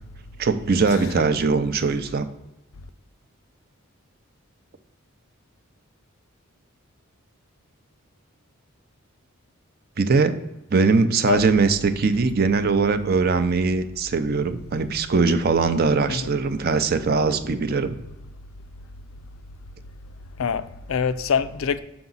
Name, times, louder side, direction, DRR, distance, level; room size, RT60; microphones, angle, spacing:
voice 1, 0.4-2.3 10.0-10.4 10.7-18.0, right 4 dB, 45° right, 0.5 m, -21 dB
voice 2, 20.4-21.8, left 6 dB, 70° left, 0.4 m, -24 dB
7.0 x 4.8 x 3.9 m
head